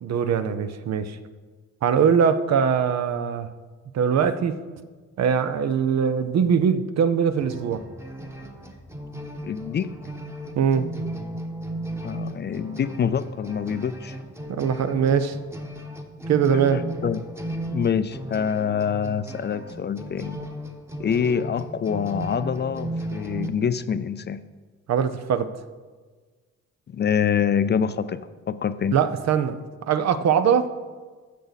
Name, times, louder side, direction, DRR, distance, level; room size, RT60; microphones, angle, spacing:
voice 1, 0.0-1.2 1.8-3.5 3.9-4.6 5.2-7.9 10.5-10.9 14.5-15.4 16.3-16.8 24.9-25.5 28.9-29.6 29.9-30.7, right 7 dB, 60° right, 11 dB, 0.7 m, -22 dB
sound 1, 7.4-23.5, right 1 dB, 10° right, 1.2 m, -35 dB
voice 2, 9.4-10.0 12.0-14.2 17.0-17.2 17.7-20.4 21.0-24.4 26.9-28.2 28.5-29.0, left 7 dB, 35° left, 13 dB, 0.5 m, -25 dB
15.0 x 6.6 x 4.1 m, 1.4 s
cardioid pair, 90°, 30 cm